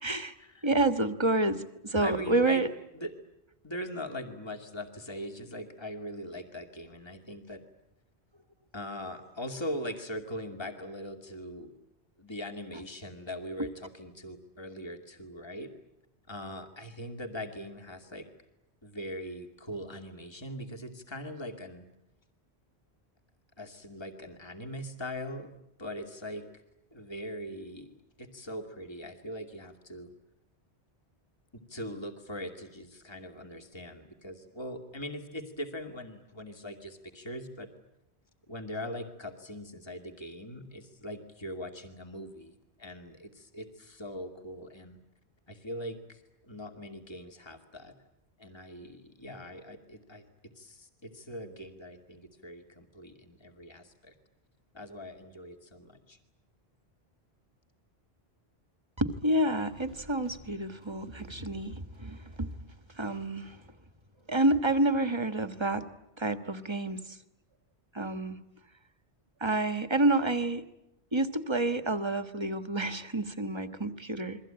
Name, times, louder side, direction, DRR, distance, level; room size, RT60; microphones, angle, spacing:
voice 1, 0.0-0.3 0.6-2.7 59.0-62.5 63.0-63.6 64.3-65.9 66.2-67.0 67.9-68.4 69.4-70.6 71.1-74.4, right 2 dB, 25° right, 9 dB, 1.6 m, -29 dB
voice 2, 2.0-2.6 2.9-3.1 3.6-7.6 8.7-11.7 12.2-15.7 16.3-18.3 18.8-21.9 23.6-25.5 25.8-26.5 26.9-27.9 28.2-30.1 31.5-37.7 38.5-45.0 45.5-47.9 48.4-54.1 54.7-56.2, equal, 25° left, 3 dB, 2.5 m, -41 dB
sound 1, 59.7-63.1, left 1 dB, 70° left, 8.2 m, -53 dB
29.5 x 23.0 x 8.9 m, 0.87 s
omnidirectional pair, 1.1 m